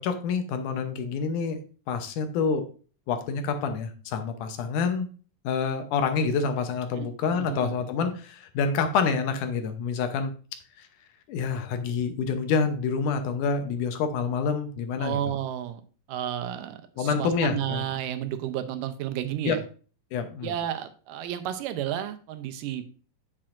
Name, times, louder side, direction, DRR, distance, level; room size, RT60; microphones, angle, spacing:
voice 1, 0.0-1.6 1.9-2.7 3.1-5.1 5.4-10.3 10.8-10.9 11.3-15.2 17.0-17.8 19.4-19.6 20.1-20.5, left 5 dB, 75° left, 7 dB, 2.3 m, -27 dB
voice 2, 7.0-7.7 15.0-15.8 16.1-19.6 20.4-22.8, right 11 dB, 85° right, 10 dB, 2.4 m, -32 dB
8.7 x 7.4 x 2.5 m, 0.39 s
omnidirectional pair, 3.8 m